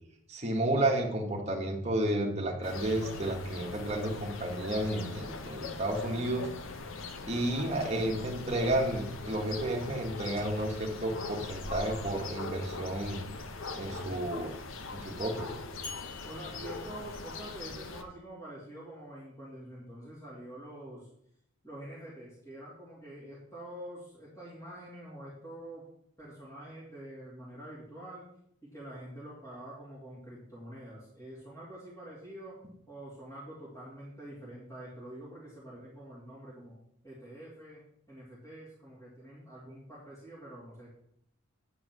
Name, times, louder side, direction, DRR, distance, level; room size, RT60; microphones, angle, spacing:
voice 1, 0.3-6.5 7.2-13.2 13.7-14.5 14.9-15.6, right 1 dB, 30° right, 0 dB, 1.5 m, -31 dB
sound 1, 2.6-18.0, left 3 dB, 70° left, 0.8 m, -41 dB
voice 2, 13.9-14.3 16.2-21.1 21.6-25.8 26.2-28.2 28.7-32.6 32.9-36.7 37.0-37.8 38.1-41.1, right 1 dB, 15° left, -9 dB, 2.7 m, -46 dB
sound 2, 15.8-17.9, left 4 dB, 50° left, 2.1 m, -48 dB
8.9 x 4.9 x 6.1 m, 0.71 s
head